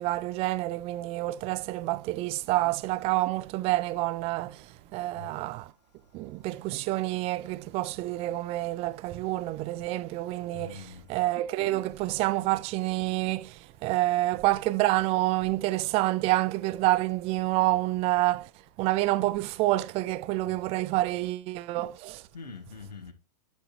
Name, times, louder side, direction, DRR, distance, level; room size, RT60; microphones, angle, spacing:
voice 1, 0.0-4.6 4.9-5.7 6.1-18.5 18.8-22.2, right 18 dB, 30° right, 0.5 m, -28 dB
voice 2, 10.5-11.1 20.5-20.6 22.3-23.1, left 4 dB, 80° left, 2.4 m, -43 dB
11.5 x 5.1 x 2.8 m
figure-of-eight pair, 105°, 21 cm